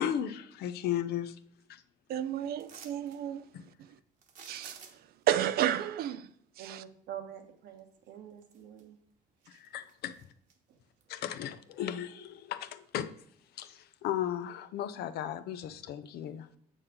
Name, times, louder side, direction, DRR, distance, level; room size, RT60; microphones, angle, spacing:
voice 1, 0.0-1.4 1.7-1.8 3.5-3.6 9.5-10.1 11.1-13.1 13.5-16.5, left 10 dB, 70° left, 0.7 m, -35 dB
voice 2, 2.1-3.4 4.5-4.8 5.3-6.3 6.6-6.8, right 11 dB, 65° right, 0.5 m, -31 dB
sound 1, 2.6-3.2 4.2-5.2 7.8-7.9 8.4-9.1 9.4-10.6 11.0-11.1, right 5 dB, 50° right, 1.2 m, -52 dB
voice 3, 6.6-9.0 9.4-9.6 10.7-10.8, right 9 dB, 80° right, 1.4 m, -46 dB
7.7 x 6.3 x 3.8 m
cardioid pair, 110°, 17 cm